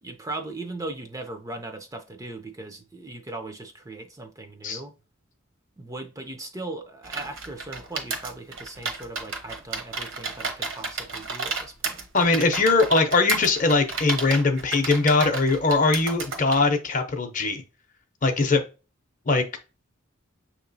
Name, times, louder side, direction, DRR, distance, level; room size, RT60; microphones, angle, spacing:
voice 1, 0.0-4.9 5.8-12.0, right 2 dB, 15° right, 0.4 m, -38 dB
sound 1, 7.0-16.6, right 4 dB, 70° right, 1.0 m, -32 dB
voice 2, 12.1-17.6 18.2-18.6 19.3-19.4, left 3 dB, 40° left, 0.6 m, -21 dB
6.2 x 2.9 x 2.6 m
head